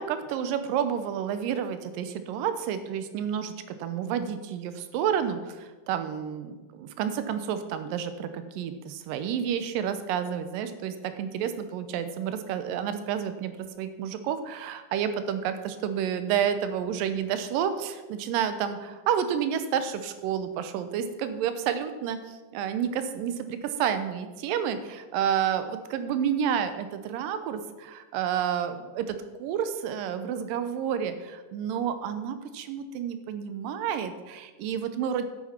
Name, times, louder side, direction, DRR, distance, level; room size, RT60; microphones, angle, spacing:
voice 1, 0.0-3.5 3.8-35.2, right 8 dB, 85° right, 10 dB, 2.4 m, -30 dB
10.0 x 8.4 x 4.3 m, 1.2 s
omnidirectional pair, 3.9 m